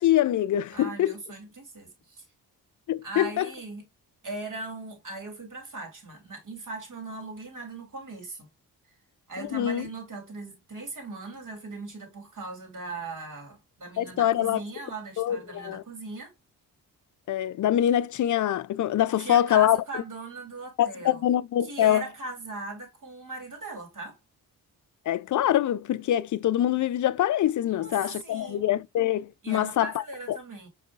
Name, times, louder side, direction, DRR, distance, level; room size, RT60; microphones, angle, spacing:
voice 1, 0.0-1.1 2.9-3.5 9.5-9.9 14.0-14.6 15.2-15.8 17.3-19.8 20.8-22.0 25.1-30.4, left 12 dB, 45° left, 0.4 m, -24 dB
voice 2, 0.7-2.3 3.0-3.8 4.2-8.5 9.3-16.3 19.1-21.2 21.6-24.2 27.7-28.6 29.4-30.7, right 3 dB, 45° right, 2.3 m, -39 dB
5.1 x 3.1 x 2.4 m
supercardioid pair, 50°, 42 cm